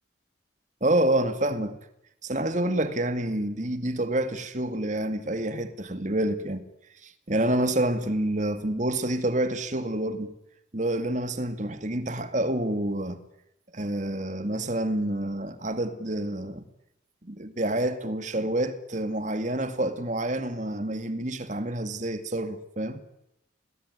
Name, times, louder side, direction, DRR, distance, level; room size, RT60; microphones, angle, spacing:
voice 1, 0.8-1.8 2.2-6.6 7.0-10.3 10.7-13.2 13.7-16.7 17.2-23.0, right 1 dB, 40° right, 2.2 m, -28 dB
29.0 x 19.0 x 9.9 m
head